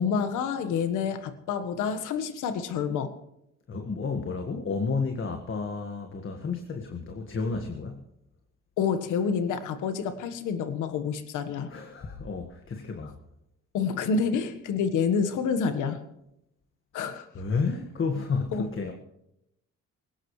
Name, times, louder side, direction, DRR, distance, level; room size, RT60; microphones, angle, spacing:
voice 1, 0.0-3.1 8.8-11.7 13.7-16.0 16.9-17.3 18.5-18.7, left 6 dB, 85° left, 10 dB, 1.5 m, -28 dB
voice 2, 3.7-8.0 11.7-13.2 17.3-18.9, left 4 dB, 40° left, 4 dB, 1.7 m, -31 dB
21.0 x 18.0 x 3.3 m, 0.82 s
cardioid pair, 90°, 30 cm